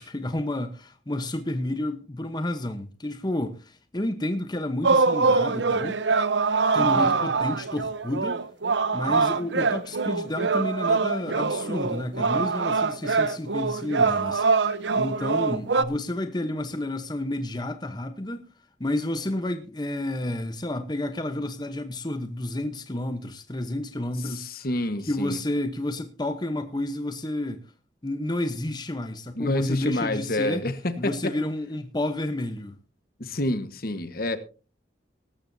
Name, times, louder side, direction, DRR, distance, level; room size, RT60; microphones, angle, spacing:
voice 1, 0.0-6.0 6.7-8.5 8.9-18.4 18.8-24.5 25.1-27.7 28.0-30.6 31.0-32.8, left 1 dB, 25° left, 1.0 m, -30 dB
sound 1, 4.8-15.8, right 4 dB, 90° right, 0.9 m, -24 dB
voice 2, 6.8-7.1 24.3-25.4 29.4-31.1 33.2-34.4, left 1 dB, 55° left, 1.4 m, -28 dB
18.5 x 14.0 x 2.7 m
head